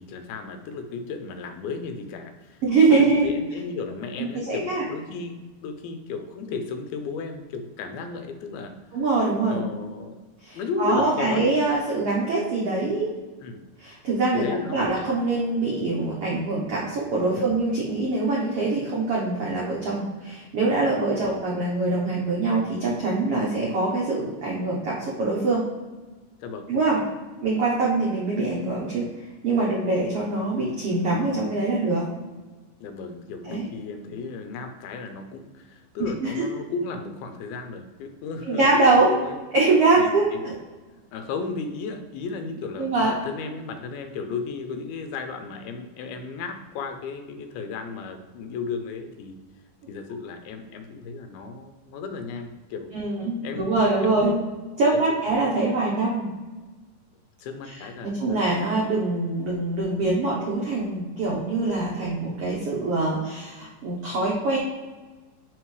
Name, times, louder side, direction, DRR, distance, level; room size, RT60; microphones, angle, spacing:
voice 1, 0.0-8.7 9.5-10.2 10.5-11.5 13.4-13.6 14.3-14.9 17.4-17.5 21.2-21.5 26.4-26.7 32.8-38.6 39.1-39.4 40.0-40.4 41.1-49.4 49.9-52.9 53.4-53.7 54.0-54.4 55.1-55.2 57.4-58.2, left 4 dB, 80° left, 7 dB, 2.5 m, -34 dB
voice 2, 2.6-3.3 4.2-4.8 8.9-9.6 10.4-13.1 13.8-25.6 26.7-27.0 27.4-29.1 29.4-32.1 33.4-33.6 36.2-36.5 38.4-39.2 39.5-40.5 42.8-43.1 52.9-54.4 54.8-56.3 58.0-64.6, right 3 dB, 85° right, -5 dB, 1.3 m, -23 dB
10.5 x 3.7 x 3.2 m, 1.3 s
omnidirectional pair, 4.3 m